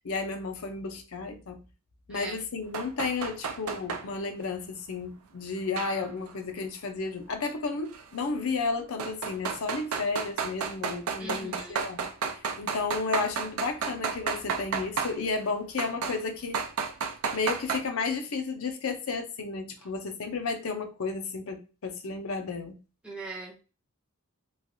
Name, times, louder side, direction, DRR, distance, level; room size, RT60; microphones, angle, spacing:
voice 1, 0.0-1.6 2.1-12.1 12.6-16.6 17.3-22.8, left 4 dB, 70° left, 0.6 m, -32 dB
sound 1, 2.7-4.0 5.8-6.3 7.9-8.0 9.0-15.2 15.8-16.2 16.5-17.8, right 6 dB, 80° right, 0.5 m, -32 dB
voice 2, 11.2-11.8 23.0-23.6, right 3 dB, 5° right, 0.5 m, -40 dB
3.2 x 2.3 x 2.6 m
head